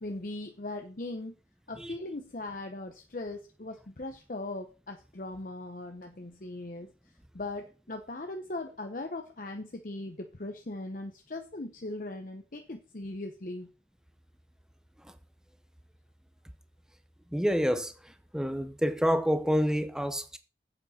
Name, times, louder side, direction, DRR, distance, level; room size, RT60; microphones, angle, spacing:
voice 1, 0.0-1.3 1.7-6.9 7.3-13.7, left 2 dB, 50° left, 0.8 m, -39 dB
voice 2, 17.3-20.4, equal, 5° right, 0.7 m, -28 dB
9.0 x 8.0 x 4.2 m
head